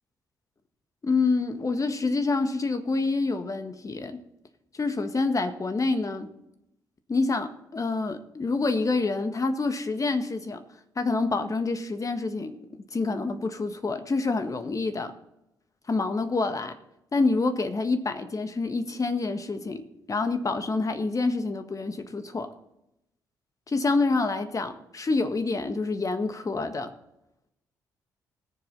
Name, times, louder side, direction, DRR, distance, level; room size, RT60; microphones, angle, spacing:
voice 1, 1.0-4.2 4.8-6.3 7.1-10.6 10.9-15.1 15.9-16.8 17.1-22.5 23.7-26.9, left 3 dB, 35° left, 8 dB, 1.6 m, -27 dB
20.0 x 7.3 x 4.0 m, 0.86 s
hypercardioid pair, 45°, 9 cm